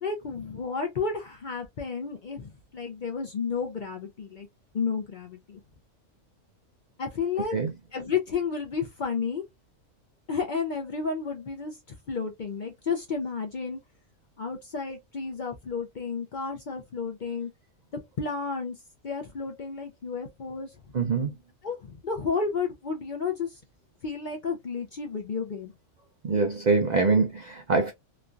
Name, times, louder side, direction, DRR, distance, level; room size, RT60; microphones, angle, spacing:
voice 1, 0.0-4.5 4.7-5.6 7.0-7.5 7.9-9.4 10.3-11.8 12.1-13.8 14.4-17.5 18.2-18.7 19.0-20.7 21.6-23.5 24.0-25.7, left 5 dB, 50° left, 0.6 m, -31 dB
voice 2, 20.9-21.4 26.2-27.9, right 4 dB, 60° right, 0.4 m, -24 dB
3.1 x 2.3 x 2.5 m
omnidirectional pair, 1.3 m